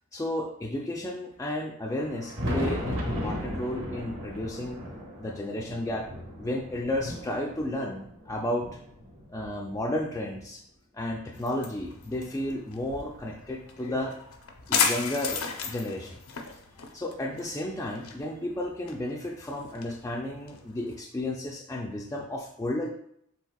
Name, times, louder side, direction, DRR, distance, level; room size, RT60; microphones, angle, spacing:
voice 1, 0.1-4.8 5.2-6.1 6.4-8.7 9.3-10.6 10.9-14.1 14.7-16.2 16.9-22.9, left 1 dB, 15° left, -1 dB, 0.3 m, -33 dB
Thunder, 1.8-10.4 11.1-12.8 13.9-14.0 14.6-14.7 16.5-16.6 18.0-18.1 19.7-19.8, equal, 60° right, 1.3 m, -37 dB
sound 1, 11.3-21.0, left 6 dB, 75° left, 0.6 m, -35 dB
7.1 x 3.3 x 2.3 m, 0.70 s
head